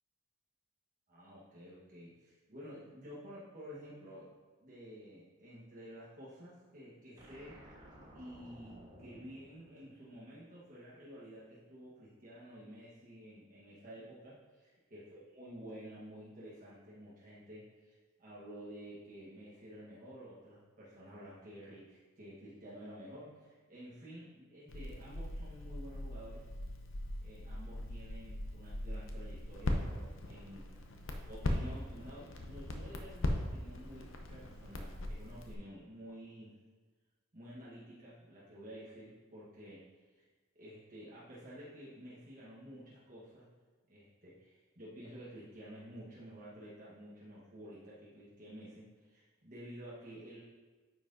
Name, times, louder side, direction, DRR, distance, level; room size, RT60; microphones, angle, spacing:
voice 1, 1.1-4.3 4.6-7.8 8.1-26.4 27.2-30.7 31.0-36.5 37.3-39.8 40.5-43.5 43.9-50.4, equal, 40° right, -8 dB, 1.3 m, -51 dB
sound 1, 7.2-10.5, right 1 dB, 20° right, 1.4 m, -56 dB
Crackle, 24.7-35.5, left 1 dB, 65° left, 0.7 m, -40 dB
9.2 x 5.7 x 2.7 m, 1.4 s
head